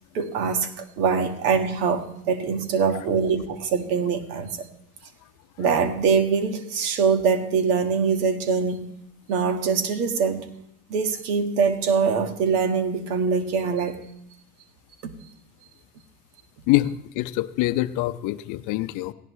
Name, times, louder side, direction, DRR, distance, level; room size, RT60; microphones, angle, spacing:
voice 1, 0.1-4.7 5.6-8.9 9.3-10.5 10.9-14.0, right 5 dB, 80° right, 6 dB, 1.9 m, -23 dB
voice 2, 16.7-19.1, left 17 dB, 45° left, 12 dB, 0.6 m, -25 dB
17.5 x 16.5 x 3.2 m, 0.77 s
supercardioid pair, 125°, 45 cm